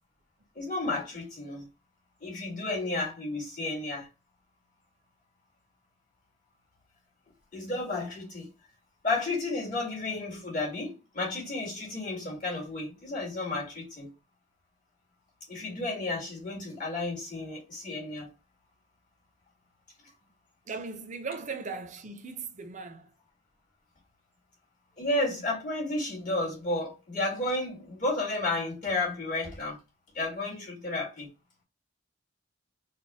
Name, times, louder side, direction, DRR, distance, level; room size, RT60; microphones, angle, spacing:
voice 1, 0.6-1.7 2.2-4.1 7.5-8.5 9.0-14.1 15.5-18.3 25.0-29.8 30.1-31.3, left 2 dB, 45° left, 1.9 m, -32 dB
voice 2, 20.7-23.1, right 4 dB, 40° right, 0.6 m, -38 dB
4.1 x 2.1 x 3.3 m
head